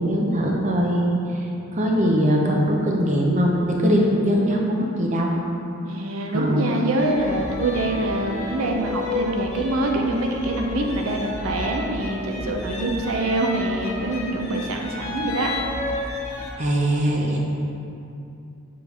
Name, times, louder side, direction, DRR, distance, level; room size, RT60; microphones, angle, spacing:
voice 1, 0.0-5.3 6.3-6.6 16.6-17.4, equal, 35° right, -1 dB, 0.7 m, -21 dB
voice 2, 5.8-15.5, right 1 dB, 75° right, 1 dB, 0.6 m, -25 dB
sound 1, 7.0-16.5, left 2 dB, 35° left, 1.0 m, -32 dB
6.9 x 3.2 x 5.4 m, 2.7 s
head